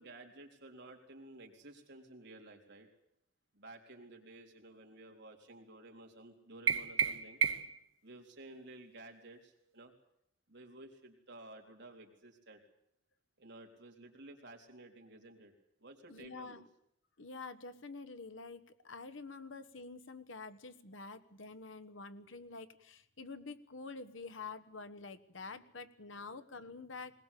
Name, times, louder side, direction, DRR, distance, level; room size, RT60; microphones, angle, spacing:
voice 1, 0.0-2.9 3.5-7.4 8.0-9.9 10.5-12.6 13.4-15.5 15.8-16.6 26.1-26.2, right 2 dB, 60° right, 2 dB, 4.0 m, -54 dB
sound 1, 6.7-7.9, right 7 dB, 75° right, 1.1 m, -32 dB
voice 2, 16.1-16.6 17.2-27.2, left 4 dB, 70° left, 12 dB, 1.3 m, -48 dB
21.0 x 20.0 x 8.4 m, 0.75 s
head